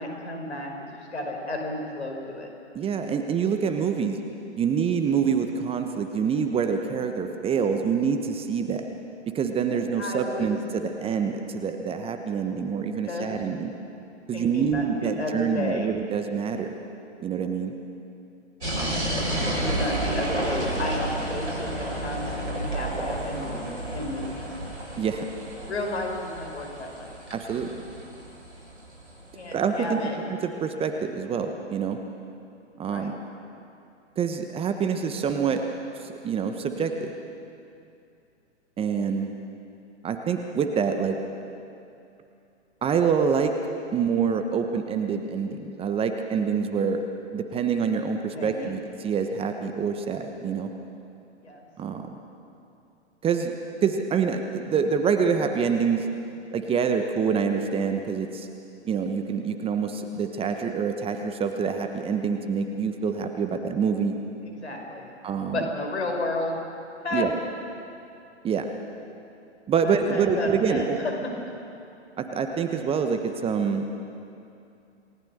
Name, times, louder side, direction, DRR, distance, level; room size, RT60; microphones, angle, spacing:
voice 1, 0.0-2.5 10.0-10.6 13.0-13.3 14.3-15.9 18.9-24.5 25.7-27.1 29.3-30.2 32.8-33.1 48.3-48.8 51.4-51.7 64.4-65.1 65.5-66.6 67.0-67.3 69.8-71.1, left 2 dB, 70° left, 2 dB, 5.6 m, -32 dB
voice 2, 2.7-4.2 4.6-8.8 9.3-13.7 14.3-16.7 17.2-17.7 18.8-19.1 25.0-25.3 27.3-27.7 29.5-30.0 30.4-32.0 32.8-33.2 34.2-35.6 36.0-37.1 38.8-39.3 40.0-41.2 42.8-43.5 43.9-47.0 47.3-50.7 51.8-52.2 53.2-53.5 53.8-56.1 56.5-58.5 58.8-64.2 65.2-65.6 67.1-67.3 68.4-68.7 69.7-71.0 72.2-73.8, right 6 dB, 15° right, 6 dB, 1.2 m, -26 dB
sound 1, 18.6-29.3, right 1 dB, 80° right, 6.6 m, -31 dB
28.5 x 18.5 x 6.6 m, 2.7 s
figure-of-eight pair, 115°, 35 cm